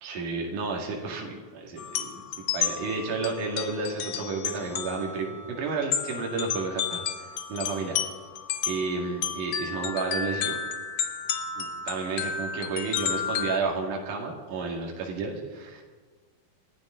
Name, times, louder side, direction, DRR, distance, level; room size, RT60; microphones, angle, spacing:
voice 1, 0.0-2.2 2.5-8.0 8.6-10.6 11.6-15.8, right 4 dB, 60° right, 0 dB, 3.5 m, -31 dB
sound 1, 1.8-13.6, left 7 dB, 80° left, 1.3 m, -32 dB
27.5 x 12.0 x 3.8 m, 1.4 s
omnidirectional pair, 4.3 m